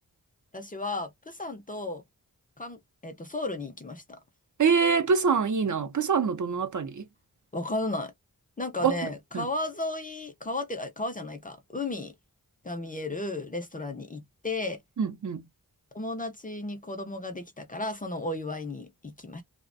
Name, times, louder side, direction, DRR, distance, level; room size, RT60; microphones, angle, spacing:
voice 1, 0.5-2.0 2.6-4.2 7.5-8.1 8.6-12.1 12.6-14.8 15.9-19.4, left 2 dB, 25° left, 0.5 m, -34 dB
voice 2, 4.6-7.1 8.8-9.0 9.3-9.5 15.0-15.4, right 6 dB, 55° right, 0.6 m, -25 dB
2.4 x 2.1 x 2.5 m
wide cardioid pair, 55°, 37 cm